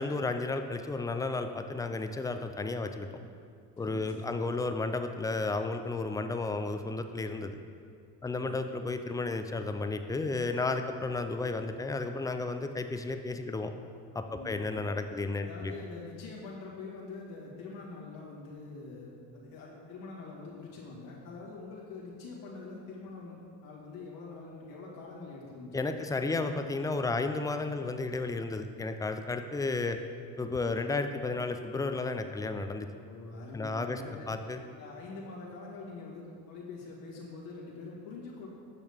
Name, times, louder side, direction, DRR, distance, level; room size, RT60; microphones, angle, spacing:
voice 1, 0.0-3.1 3.8-7.6 8.2-13.7 14.1-15.7 25.7-30.0 30.4-32.9 33.5-34.0 34.3-34.6, left 3 dB, 10° left, 7 dB, 0.3 m, -33 dB
voice 2, 3.8-4.5 8.2-8.7 14.3-14.7 15.4-23.4 23.6-26.5 33.0-34.3 34.8-38.5, left 3 dB, 75° left, -5 dB, 2.0 m, -45 dB
8.8 x 6.4 x 3.5 m, 2.3 s
hypercardioid pair, 55°, 49 cm